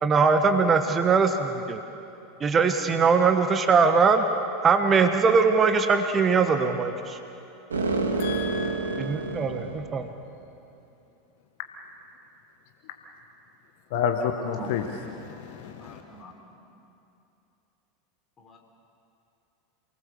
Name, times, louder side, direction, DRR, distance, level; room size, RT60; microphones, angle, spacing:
voice 1, 0.0-1.8 2.4-4.2 4.6-7.2 9.0-10.1, right 5 dB, 25° right, 7 dB, 1.3 m, -21 dB
sound 1, 7.7-10.1, right 3 dB, 70° right, 2.0 m, -28 dB
voice 2, 8.2-9.4 13.9-16.0, left 7 dB, 55° left, 5 dB, 1.3 m, -31 dB
voice 3, 14.4-14.8 15.8-16.3 18.4-18.6, equal, 30° left, 2 dB, 4.0 m, -42 dB
28.5 x 19.5 x 7.0 m, 2.8 s
figure-of-eight pair, 80°, 0 cm